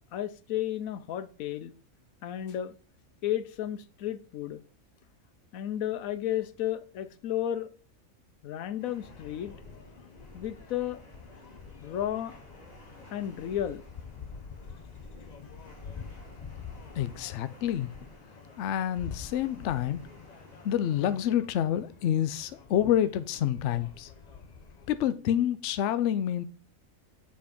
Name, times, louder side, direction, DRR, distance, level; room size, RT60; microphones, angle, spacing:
voice 1, 0.1-1.7 2.2-2.7 3.2-4.6 5.5-7.7 8.4-9.5 10.3-11.0 11.8-12.3 13.1-13.8, left 11 dB, 90° left, 1.1 m, -33 dB
sound 1, 8.8-21.2, equal, 15° left, 3.0 m, -57 dB
sound 2, 9.0-25.0, left 6 dB, 40° left, 0.7 m, -47 dB
voice 2, 17.0-17.9 18.6-20.0 20.6-24.1 24.9-26.4, left 10 dB, 70° left, 0.9 m, -28 dB
7.0 x 5.1 x 5.2 m
omnidirectional pair, 1.4 m